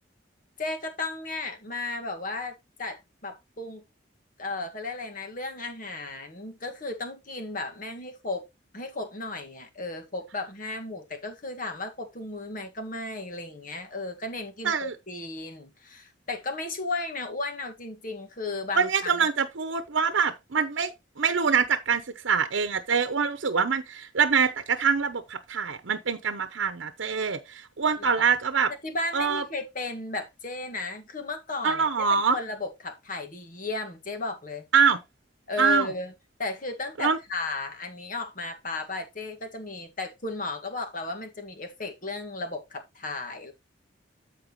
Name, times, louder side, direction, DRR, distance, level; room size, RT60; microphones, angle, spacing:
voice 1, 0.6-3.8 4.4-8.4 8.7-19.1 28.2-28.3 28.8-34.6 35.5-36.1 36.4-43.5, left 3 dB, 45° left, 1.9 m, -35 dB
voice 2, 18.8-20.9 21.2-28.7 29.1-29.4 31.6-32.4 34.7-35.0 35.6-35.9 37.0-37.2, right 6 dB, 90° right, 0.8 m, -24 dB
13.5 x 4.7 x 3.1 m
head